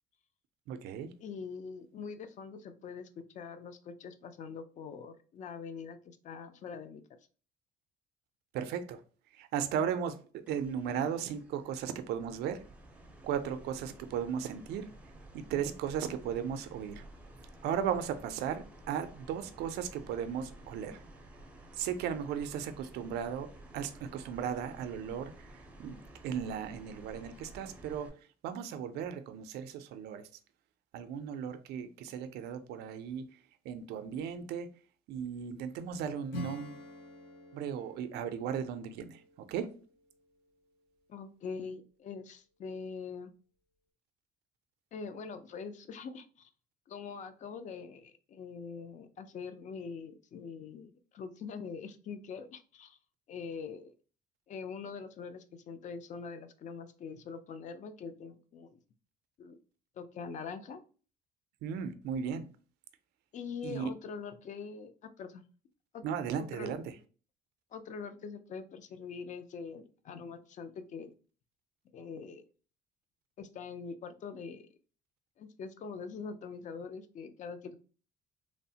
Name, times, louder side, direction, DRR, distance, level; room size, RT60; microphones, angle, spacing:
voice 1, 0.7-1.1 8.5-9.0 9.3-10.2 10.5-12.6 13.2-14.9 15.3-17.0 17.6-21.0 21.7-23.5 23.7-28.1 28.4-30.2 30.9-33.3 33.7-34.7 35.1-36.8 37.5-39.2 39.5-39.7 61.6-62.4 63.6-63.9 66.0-66.9, right 8 dB, 80° right, 0.4 m, -36 dB
voice 2, 1.2-7.0 41.1-43.3 44.9-46.5 46.9-53.0 53.3-53.9 54.5-58.8 59.4-59.6 60.0-60.8 63.3-65.4 65.9-66.0 66.4-66.7 67.7-71.1 71.9-72.4 73.4-74.7 75.4-77.8, left 5 dB, 45° left, 0.4 m, -43 dB
sound 1, 10.5-28.1, right 1 dB, 10° right, 0.5 m, -53 dB
Acoustic guitar / Strum, 36.3-40.6, left 1 dB, 80° left, 0.7 m, -47 dB
3.1 x 2.0 x 2.7 m
cardioid pair, 110°, 17 cm